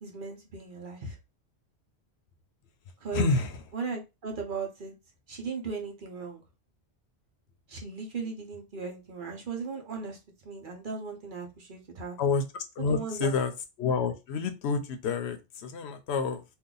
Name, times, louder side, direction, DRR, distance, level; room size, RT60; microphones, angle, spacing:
voice 1, 0.0-1.2 3.0-3.3 3.7-4.9 5.3-6.4 7.7-10.2 10.4-12.2 12.9-13.4, right 5 dB, 50° right, 2 dB, 0.9 m, -37 dB
voice 2, 3.1-3.6 12.2-12.4 12.8-13.5 13.8-16.4, left 4 dB, 75° left, 8 dB, 0.9 m, -28 dB
2.7 x 2.3 x 3.8 m, 0.25 s
omnidirectional pair, 1.1 m